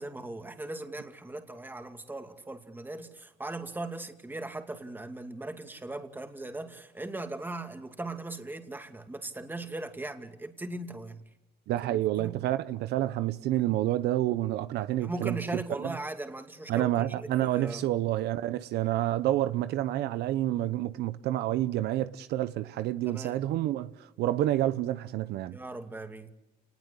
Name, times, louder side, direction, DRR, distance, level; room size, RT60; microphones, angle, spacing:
voice 1, 0.0-11.2 11.8-12.4 15.0-17.9 23.1-23.3 25.5-26.3, right 2 dB, 10° right, 2.5 m, -39 dB
voice 2, 11.7-15.4 15.8-15.9 16.7-25.6, right 14 dB, 80° right, 0.9 m, -29 dB
29.5 x 20.0 x 8.3 m
cardioid pair, 110°, 17 cm